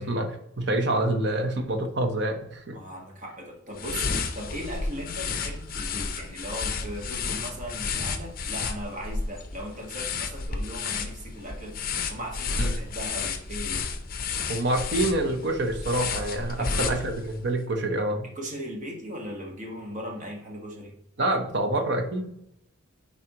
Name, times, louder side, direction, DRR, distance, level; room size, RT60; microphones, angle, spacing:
voice 1, 0.0-2.8 12.6-12.8 14.5-18.3 21.2-22.3, right 1 dB, 55° right, 4 dB, 1.0 m, -27 dB
voice 2, 2.7-11.8 12.1-13.9 16.6-17.0 18.3-20.9, equal, 40° right, 0 dB, 1.6 m, -38 dB
sound 1, 3.7-17.4, left 4 dB, 45° left, 0.6 m, -32 dB
9.6 x 4.1 x 3.0 m, 0.78 s
head